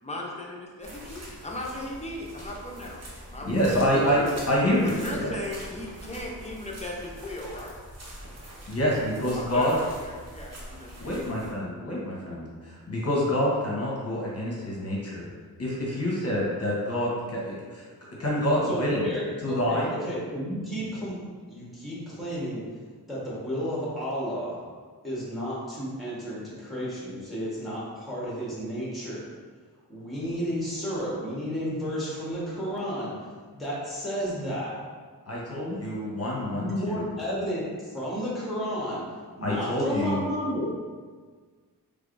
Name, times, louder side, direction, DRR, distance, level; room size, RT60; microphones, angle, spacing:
voice 1, 0.0-3.5 5.0-7.7 9.3-11.3, left 1 dB, 15° left, -2 dB, 0.6 m, -37 dB
sound 1, 0.8-11.5, equal, 40° right, 0.9 m, -44 dB
voice 2, 3.4-5.4 8.7-9.7 11.0-15.3 15.6-17.9 18.2-19.1 19.4-19.9 35.3-37.1 39.4-40.2, equal, 40° left, -5 dB, 1.0 m, -27 dB
voice 3, 18.6-21.2 21.5-22.6 23.1-24.6 25.0-29.3 29.9-34.8 36.5-39.0 39.4-40.7, equal, ahead, -7 dB, 1.2 m, -32 dB
3.4 x 3.3 x 2.5 m, 1.5 s
cardioid pair, 70°, 39 cm